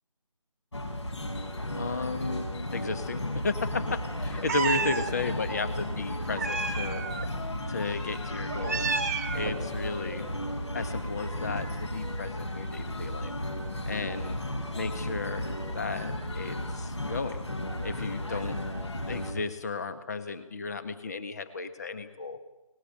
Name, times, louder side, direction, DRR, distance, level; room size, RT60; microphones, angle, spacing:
sound 1, 0.7-19.3, left 1 dB, 55° left, 5.9 m, -34 dB
voice 1, 1.7-7.0 7.7-8.8 9.3-10.3 10.7-13.3 13.8-14.4 14.7-15.5 15.7-17.4 17.8-18.6 19.0-22.4, left 4 dB, 30° left, 11 dB, 1.6 m, -34 dB
Meow, 4.5-5.1 6.4-7.3 8.5-9.6, right 5 dB, 25° right, 1.5 m, -30 dB
23.5 x 20.0 x 9.0 m, 0.97 s
figure-of-eight pair, 155°, 18 cm